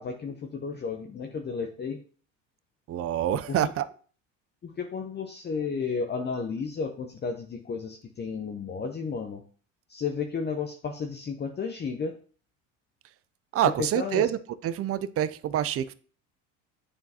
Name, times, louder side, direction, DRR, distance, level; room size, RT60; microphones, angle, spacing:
voice 1, 0.0-2.0 3.5-3.7 4.6-9.4 9.9-12.2 13.8-14.3, left 5 dB, 25° left, 0.8 m, -33 dB
voice 2, 2.9-3.9 13.5-15.9, right 11 dB, 40° right, 0.5 m, -27 dB
9.8 x 3.7 x 2.8 m
hypercardioid pair, 80°, 38 cm